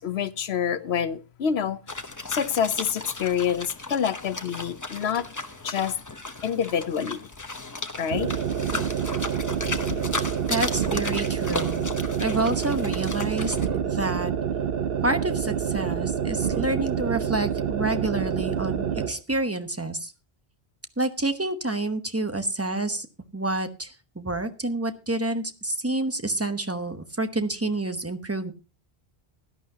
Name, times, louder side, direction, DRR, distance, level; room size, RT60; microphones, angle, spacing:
voice 1, 0.0-1.8 2.3-5.3 5.6-5.9 6.4-7.3 8.0-8.3, left 8 dB, 75° left, 1.0 m, -27 dB
sound 1, 1.9-13.7, left 2 dB, 20° left, 0.8 m, -35 dB
sound 2, 8.1-19.2, right 8 dB, 65° right, 1.0 m, -27 dB
voice 2, 10.5-11.9 12.2-13.6 13.8-14.3 15.0-20.1 21.0-23.1 23.3-28.5, right 2 dB, 15° right, 0.9 m, -28 dB
17.0 x 11.5 x 2.8 m
omnidirectional pair, 1.1 m